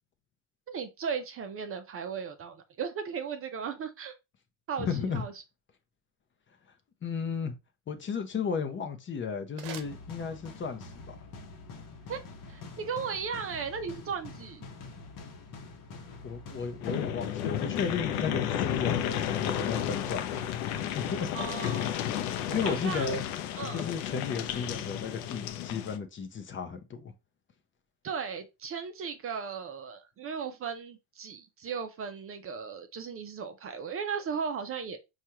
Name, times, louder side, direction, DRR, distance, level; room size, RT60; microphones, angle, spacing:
voice 1, 0.7-4.1 4.7-5.3 12.1-12.2 12.5-14.7 21.3-22.0 22.5-23.2 23.6-23.9 28.0-35.0, right 6 dB, 35° right, 0.5 m, -36 dB
voice 2, 4.8-5.3 7.0-7.5 7.9-11.2 16.2-20.4 20.8-21.3 22.5-23.2 23.7-27.1, left 5 dB, 30° left, 0.6 m, -34 dB
sound 1, 9.4-10.8, right 9 dB, 70° right, 0.7 m, -48 dB
sound 2, 9.8-24.0, left 4 dB, 50° left, 0.9 m, -46 dB
sound 3, 16.8-26.0, left 10 dB, 80° left, 0.6 m, -32 dB
4.4 x 2.4 x 2.8 m
supercardioid pair, 85°, 42 cm